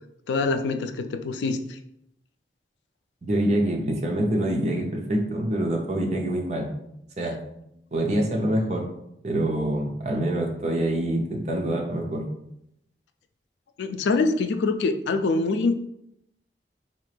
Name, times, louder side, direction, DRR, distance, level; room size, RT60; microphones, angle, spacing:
voice 1, 0.3-1.8 13.8-15.8, left 3 dB, 90° left, 8 dB, 0.3 m, -24 dB
voice 2, 3.2-6.7 7.2-7.4 7.9-8.9 9.2-12.2, right 1 dB, 40° right, 1 dB, 0.6 m, -25 dB
4.0 x 2.4 x 3.2 m, 0.79 s
head